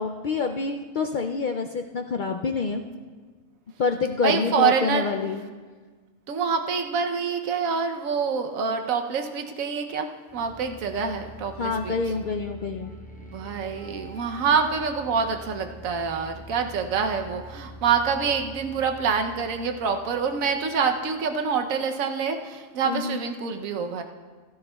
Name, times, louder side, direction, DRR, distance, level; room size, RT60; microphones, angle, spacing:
voice 1, 0.0-2.8 3.8-5.5 11.6-12.9 22.8-23.2, left 4 dB, 75° left, 4 dB, 0.4 m, -27 dB
voice 2, 4.2-5.1 6.3-10.1 10.3-11.9 13.2-24.0, right 6 dB, 85° right, 5 dB, 1.2 m, -26 dB
sound 1, 10.3-21.2, equal, 10° left, 0.5 m, -45 dB
16.5 x 14.0 x 2.3 m, 1.5 s
omnidirectional pair, 1.4 m